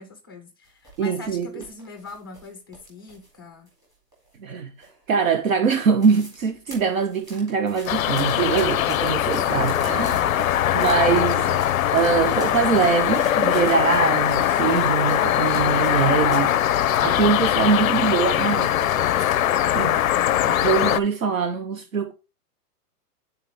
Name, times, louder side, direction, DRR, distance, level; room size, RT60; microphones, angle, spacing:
voice 1, 0.0-3.7 10.1-10.3, left 4 dB, 15° left, 0.5 m, -41 dB
sound 1, 0.6-3.4 3.7-4.5 4.8-5.2 5.5-5.6 5.8-6.4 6.7-16.6 16.9-18.1 18.5-18.6 19.2-19.5 19.9-20.1, right 1 dB, 5° right, 2.3 m, -45 dB
voice 2, 1.0-1.6 4.4-4.7 5.1-10.1 10.7-11.6 11.9-16.6 17.0-18.8 19.7-20.0 20.5-22.1, right 6 dB, 55° right, 1.1 m, -23 dB
sound 2, 7.9-21.0, left 11 dB, 60° left, 0.5 m, -21 dB
9.4 x 4.4 x 3.5 m
hypercardioid pair, 170°, 48 cm